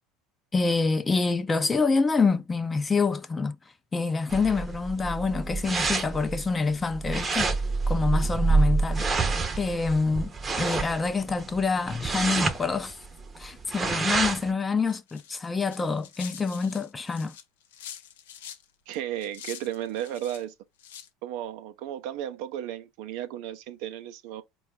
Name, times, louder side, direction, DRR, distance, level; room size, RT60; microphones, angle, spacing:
voice 1, 0.5-3.6 3.9-7.5 7.9-9.0 9.6-13.0 13.4-17.3, left 4 dB, 20° left, 0.5 m, -26 dB
sound 1, 4.3-14.5, right 3 dB, 25° right, 0.7 m, -28 dB
sound 2, 14.9-18.6 18.9-20.4 20.8-21.1, left 9 dB, 80° left, 0.5 m, -45 dB
voice 2, 18.9-20.5 21.2-24.4, right 11 dB, 70° right, 0.5 m, -34 dB
4.4 x 2.3 x 3.5 m
hypercardioid pair, 80°, 0 cm